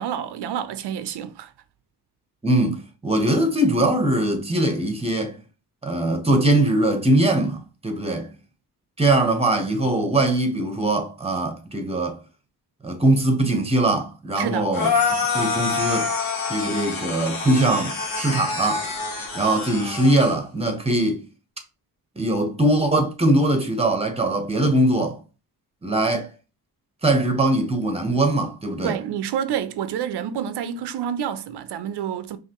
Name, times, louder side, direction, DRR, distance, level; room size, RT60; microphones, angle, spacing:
voice 1, 0.0-1.5 14.4-14.7 26.1-26.2 28.8-32.4, right 9 dB, 85° right, 0.6 m, -28 dB
voice 2, 2.4-5.4 5.8-8.3 9.0-12.2 12.8-14.9 15.3-16.1 16.5-18.9 19.3-21.2 22.2-25.2 25.8-26.3 27.0-29.0, right 1 dB, 15° right, 1.0 m, -21 dB
sound 1, 14.7-20.3, left 5 dB, 60° left, 1.6 m, -26 dB
5.7 x 2.7 x 2.9 m
cardioid pair, 110°, 39 cm